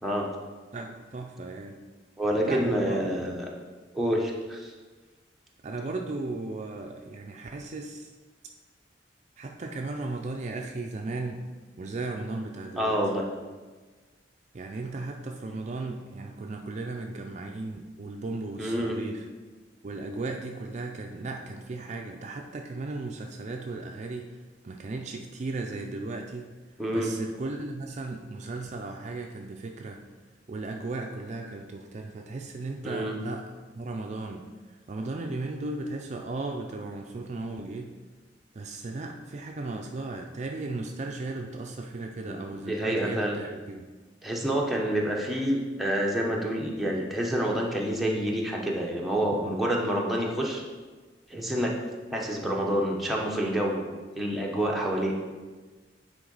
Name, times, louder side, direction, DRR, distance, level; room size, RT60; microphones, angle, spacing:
voice 1, 0.7-1.8 2.4-3.0 5.6-8.1 9.4-11.4 11.8-13.0 14.5-19.2 19.8-24.3 24.6-26.5 26.9-30.0 30.5-34.5 34.9-37.9 38.5-43.9, right 3 dB, 40° right, 2 dB, 0.4 m, -36 dB
voice 2, 2.2-3.5 3.9-4.7 12.8-13.2 18.6-19.0 26.8-27.1 32.8-33.1 42.3-43.4 44.2-50.6 51.3-51.7 52.1-53.8 54.1-55.1, equal, ahead, -3 dB, 0.8 m, -28 dB
9.2 x 3.6 x 3.9 m, 1.3 s
head